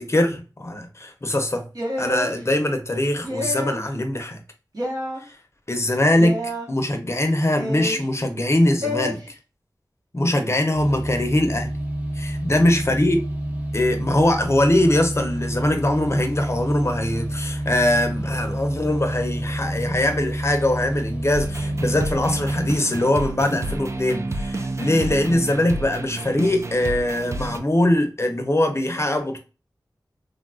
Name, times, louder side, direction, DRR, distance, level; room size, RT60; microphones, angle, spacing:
voice 1, 0.0-1.7 2.0-4.4 5.7-9.2 10.1-11.7 12.2-13.2 13.7-29.4, left 1 dB, 35° left, 0.6 m, -22 dB
sound 1, 1.7-2.3 3.2-3.9 4.7-5.2 6.1-6.7 7.6-8.1 8.8-9.1, left 1 dB, 60° right, 1.1 m, -28 dB
sound 2, 10.7-22.7, right 1 dB, 20° right, 0.7 m, -28 dB
sound 3, 21.3-27.6, right 2 dB, 40° right, 0.4 m, -30 dB
3.4 x 2.3 x 2.3 m
wide cardioid pair, 60°, 8 cm